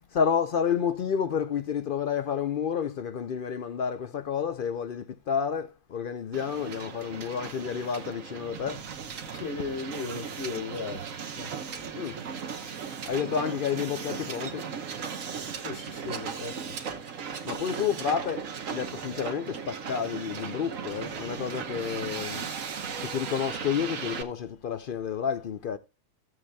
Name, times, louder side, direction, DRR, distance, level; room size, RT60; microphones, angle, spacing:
voice 1, 0.1-8.8 12.0-12.2 12.8-14.7 17.4-22.5 23.0-25.8, left 7 dB, 65° left, 0.5 m, -30 dB
Hiss, 6.3-24.2, right 6 dB, 70° right, 1.4 m, -37 dB
voice 2, 9.3-11.1 11.3-11.5 15.5-17.0, left 4 dB, 45° left, 1.7 m, -36 dB
14.5 x 7.7 x 2.2 m
omnidirectional pair, 1.5 m